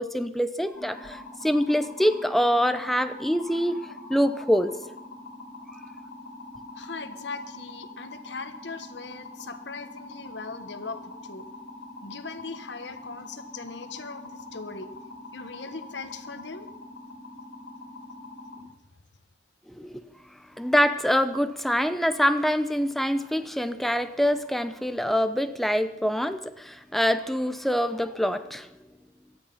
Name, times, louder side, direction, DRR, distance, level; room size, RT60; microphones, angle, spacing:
voice 1, 0.0-3.8 4.1-4.8 19.7-20.0 20.6-28.7, equal, ahead, 9 dB, 0.7 m, -25 dB
sound 1, 0.7-18.6, left 2 dB, 50° left, 4.5 m, -43 dB
voice 2, 6.8-11.4 12.0-14.9 15.3-16.7, left 4 dB, 75° left, 9 dB, 1.4 m, -39 dB
18.0 x 13.0 x 5.7 m, 0.83 s
head